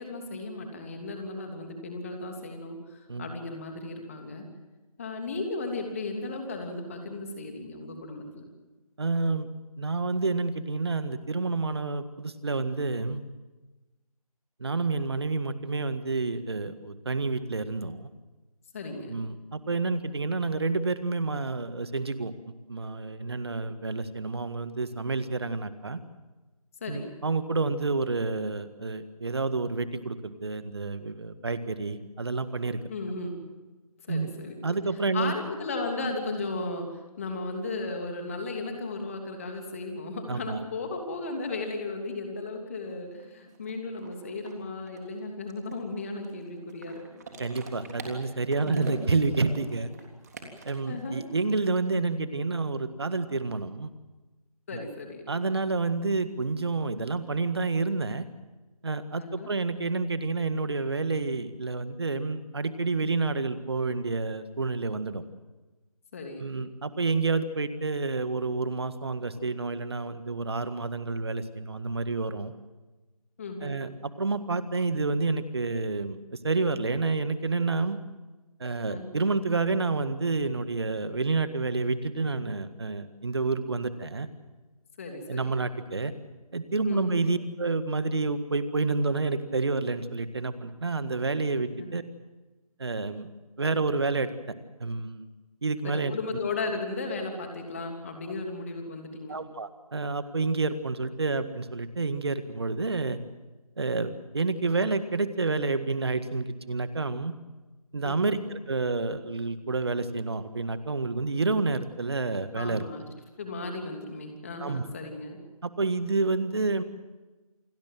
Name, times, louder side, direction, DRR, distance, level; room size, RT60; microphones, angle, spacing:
voice 1, 0.0-4.5 5.0-8.4 18.7-19.2 26.8-27.1 32.9-33.4 34.0-34.6 35.1-36.9 37.2-47.2 48.6-48.9 50.9-51.2 54.7-55.2 59.2-59.5 66.1-66.4 73.4-73.8 78.9-79.1 85.0-85.6 86.8-87.2 91.8-91.9 95.8-99.4 108.0-108.3 112.5-113.0 113.4-115.4, left 3 dB, 20° left, 4 dB, 3.0 m, -35 dB
voice 2, 9.0-9.5 9.8-13.2 14.6-18.1 19.1-22.3 22.7-26.0 26.9-32.8 34.1-34.3 34.6-35.3 40.3-40.6 47.4-49.9 50.7-53.9 54.7-54.8 55.3-58.3 58.8-65.2 66.4-72.5 73.6-76.2 76.4-78.0 78.6-84.3 85.3-86.1 86.5-92.0 92.8-93.3 93.6-94.3 94.8-95.3 95.6-96.1 99.3-103.2 103.8-107.3 107.9-108.4 108.7-112.8 114.6-114.8 115.6-116.8, right 3 dB, 45° right, 12 dB, 1.7 m, -29 dB
sound 1, 42.9-43.0 43.2-51.4, right 3 dB, 25° right, 3.5 m, -45 dB
28.0 x 19.5 x 7.6 m, 1.2 s
figure-of-eight pair, 165°, 19 cm